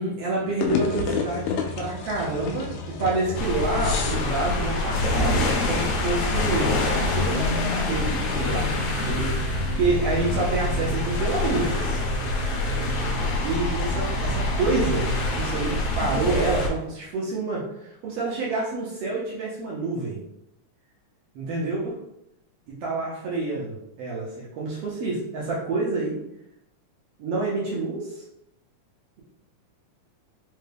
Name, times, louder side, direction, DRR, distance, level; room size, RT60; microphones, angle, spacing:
voice 1, 0.0-6.7 7.1-12.0 13.4-20.2 21.3-22.0 22.8-26.2 27.2-28.2, right 3 dB, 75° right, -5 dB, 1.4 m, -28 dB
motor city atmosphere, 0.6-17.0, left 5 dB, 90° left, 2.2 m, -33 dB
sound 1, 3.3-16.7, left 2 dB, 70° left, 1.8 m, -26 dB
sound 2, 8.7-16.2, right 5 dB, 45° left, 0.9 m, -37 dB
5.3 x 2.2 x 3.3 m, 0.81 s
omnidirectional pair, 3.8 m